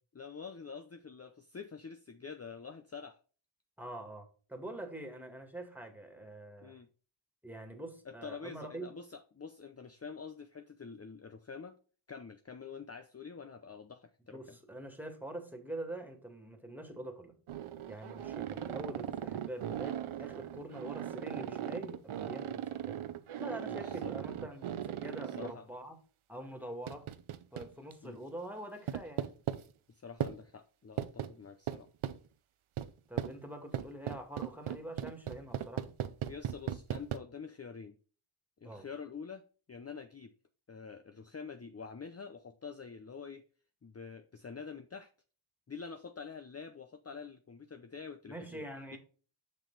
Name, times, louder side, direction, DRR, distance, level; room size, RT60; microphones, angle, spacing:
voice 1, 0.2-3.2 6.6-6.9 8.1-11.8 12.1-14.6 23.7-24.1 25.3-25.7 28.0-28.2 29.9-31.9 36.3-38.0 38.6-39.4 39.7-40.3 40.7-43.4 43.8-45.1 45.7-48.7, left 5 dB, 30° left, 0.6 m, -47 dB
voice 2, 3.8-6.8 7.4-9.0 14.3-17.3 17.9-23.0 23.4-26.0 26.3-27.1 27.5-29.3 33.1-35.9 38.6-38.9 48.3-49.0, right 1 dB, 5° right, 2.1 m, -45 dB
sound 1, 17.5-25.5 26.9-27.9 28.9-29.6 30.2-30.3 31.0-31.3 31.7-32.2 32.8-32.9 33.2-33.3 33.7-37.2, right 10 dB, 85° right, 0.7 m, -38 dB
6.8 x 6.0 x 4.0 m
cardioid pair, 50°, 48 cm